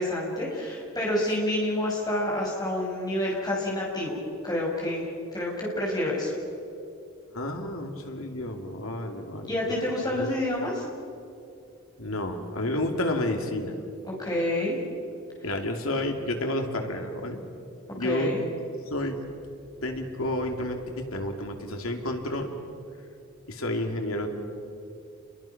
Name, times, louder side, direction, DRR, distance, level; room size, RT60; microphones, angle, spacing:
voice 1, 0.0-4.2 4.4-5.1 5.3-6.3 9.5-10.8 14.2-14.8 18.0-18.4, left 1 dB, 20° left, -4 dB, 5.9 m, -28 dB
voice 2, 7.3-9.5 10.2-10.3 12.0-13.8 15.4-17.4 17.9-18.3 18.9-19.2 19.8-22.5 23.5-24.3, left 1 dB, 85° left, 4 dB, 2.5 m, -30 dB
29.5 x 22.5 x 5.9 m, 2.6 s
head